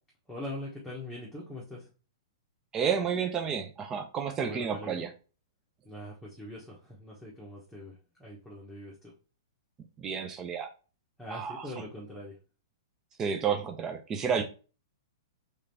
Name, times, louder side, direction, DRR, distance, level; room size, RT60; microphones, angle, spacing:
voice 1, 0.3-1.9 4.4-5.0 5.8-9.1 11.2-12.4 14.3-14.4, left 1 dB, ahead, 1.2 m, -42 dB
voice 2, 2.7-5.1 10.0-10.7 11.3-11.7 13.2-14.4, right 7 dB, 20° right, 0.7 m, -31 dB
4.9 x 3.4 x 2.8 m
figure-of-eight pair, 110°, 2 cm